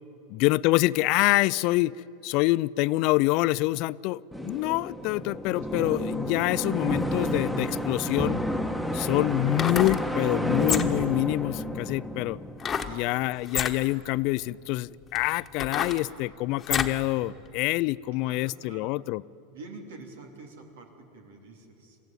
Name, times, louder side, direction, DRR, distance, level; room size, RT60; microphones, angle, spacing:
voice 1, 0.3-1.9 2.2-8.4 8.9-12.4 12.9-19.2, left 19 dB, 60° left, 21 dB, 0.4 m, -26 dB
sound 1, 4.3-13.1, equal, 5° right, 1.2 m, -30 dB
sound 2, 9.4-10.0 10.6-11.1 12.6-13.0 13.4-13.8 14.5-14.6 15.1-17.0 17.5-17.6, left 7 dB, 25° left, 1.2 m, -30 dB
voice 2, 12.8-13.2 17.7-17.9 18.1-18.9 19.5-22.0, right 3 dB, 90° right, 4 dB, 2.9 m, -47 dB
22.5 x 14.5 x 9.2 m, 3.0 s
supercardioid pair, 115°, 0 cm